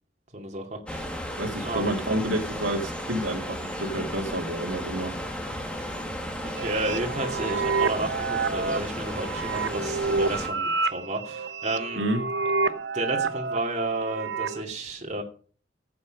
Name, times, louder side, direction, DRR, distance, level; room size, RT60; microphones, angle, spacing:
voice 1, 0.3-1.2 1.6-2.0 5.8-6.0 6.4-12.0 12.7-15.2, right 2 dB, 35° right, 2.4 m, -32 dB
sound 1, 0.9-10.5, equal, 5° left, 1.9 m, -34 dB
voice 2, 1.4-5.2 12.0-12.2, right 1 dB, 85° right, 2.5 m, -29 dB
sound 2, 6.6-14.6, right 4 dB, 60° right, 0.9 m, -29 dB
15.0 x 8.6 x 5.3 m
head